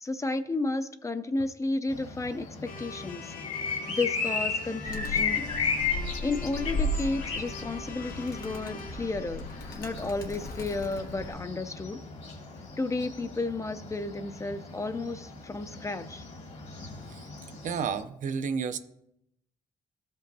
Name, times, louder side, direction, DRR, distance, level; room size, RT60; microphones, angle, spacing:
voice 1, 0.0-3.3 3.9-5.4 6.2-12.0 12.8-16.2, left 2 dB, 20° left, 11 dB, 0.4 m, -32 dB
sound 1, 1.9-18.0, left 5 dB, 50° left, 1.3 m, -36 dB
sound 2, 2.7-10.8, left 5 dB, 70° left, 0.7 m, -45 dB
Animal, 4.9-11.3, left 1 dB, 90° left, 1.3 m, -36 dB
voice 2, 17.6-18.8, right 6 dB, 60° right, 10 dB, 0.5 m, -31 dB
13.5 x 5.3 x 2.6 m, 0.79 s
cardioid pair, 105°, 15 cm